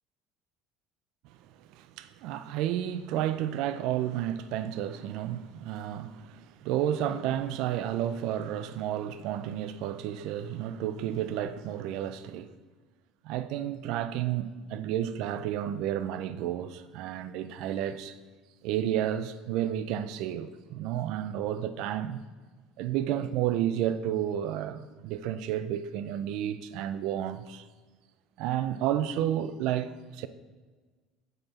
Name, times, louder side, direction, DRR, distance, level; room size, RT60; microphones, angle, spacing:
voice 1, 1.7-12.5 13.2-18.2 18.6-22.2 22.8-27.7 28.4-30.3, right 11 dB, 55° right, 0.3 m, -31 dB
7.8 x 4.6 x 5.6 m
cardioid pair, 175°, 0 cm